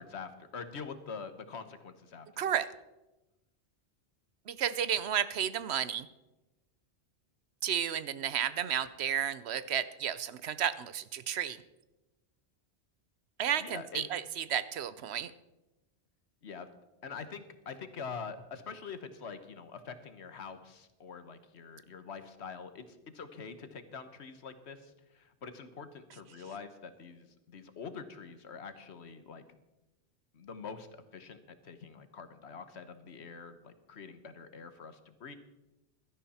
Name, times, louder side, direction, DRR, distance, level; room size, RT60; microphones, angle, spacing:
voice 1, 0.0-2.4 13.6-14.1 16.4-16.7 17.0-29.4 30.3-30.9 31.1-35.3, left 5 dB, 75° left, 10 dB, 1.4 m, -45 dB
voice 2, 2.4-2.7 4.5-6.1 7.6-11.6 13.4-15.3, right 9 dB, 75° right, 15 dB, 0.9 m, -32 dB
16.0 x 12.5 x 4.3 m, 1.0 s
omnidirectional pair, 1.1 m